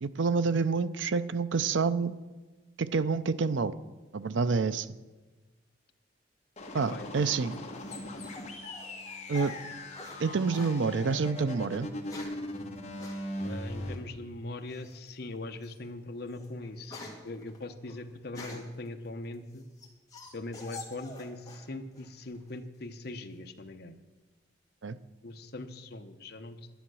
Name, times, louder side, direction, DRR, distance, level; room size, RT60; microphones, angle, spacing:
voice 1, 0.0-2.1 2.8-3.7 4.1-5.0 6.7-7.6 9.3-9.5 10.2-11.9 24.8-25.0, right 4 dB, 80° right, 14 dB, 0.5 m, -28 dB
sound 1, 6.6-14.0, left 1 dB, 35° left, 1.6 m, -40 dB
voice 2, 6.9-7.4 13.4-19.7 20.3-24.0 25.2-26.6, left 2 dB, 55° left, 7 dB, 0.8 m, -41 dB
sound 2, 6.9-10.2 10.5-10.8 11.7-12.5 13.0-13.2 14.7-15.1 15.6-15.8 16.2-18.8 19.3-21.7 21.9-22.6, left 3 dB, 20° left, 1.9 m, -46 dB
11.0 x 10.5 x 6.2 m, 1.3 s
head